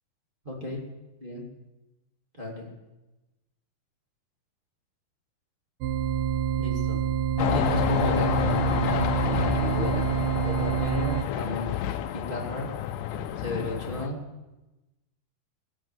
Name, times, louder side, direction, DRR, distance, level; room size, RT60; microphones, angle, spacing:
voice 1, 0.4-0.8 1.2-1.4 2.3-2.7 6.6-7.0 7.5-10.1 10.4-11.7 12.1-12.7 13.4-14.2, left 1 dB, 15° right, -4 dB, 2.2 m, -34 dB
sound 1, 5.8-11.2, right 9 dB, 80° right, 1.9 m, -27 dB
sound 2, 7.4-14.1, left 11 dB, 85° left, 1.8 m, -29 dB
18.5 x 9.1 x 7.7 m, 1.0 s
omnidirectional pair, 4.6 m